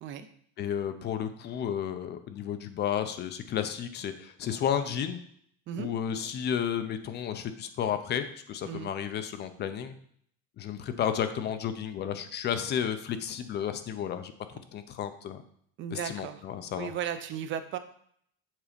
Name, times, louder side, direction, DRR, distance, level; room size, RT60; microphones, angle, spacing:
voice 1, 0.6-5.2 5.8-9.9 10.6-14.3 14.7-15.4 15.9-16.9, left 9 dB, 30° left, 9 dB, 0.5 m, -32 dB
voice 2, 15.8-16.4 16.7-17.8, right 9 dB, 35° right, 10 dB, 0.5 m, -35 dB
7.3 x 4.0 x 5.1 m, 0.64 s
cardioid pair, 170°, 34 cm